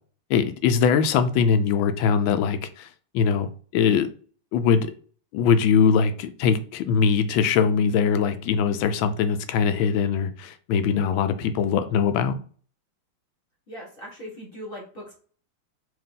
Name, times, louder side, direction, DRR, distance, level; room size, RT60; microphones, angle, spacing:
voice 1, 0.3-2.9 3.1-4.1 4.5-4.9 5.3-12.4, left 6 dB, 80° left, 1.3 m, -22 dB
voice 2, 13.7-15.1, equal, 30° left, 1.4 m, -39 dB
4.6 x 2.8 x 3.7 m
omnidirectional pair, 2.2 m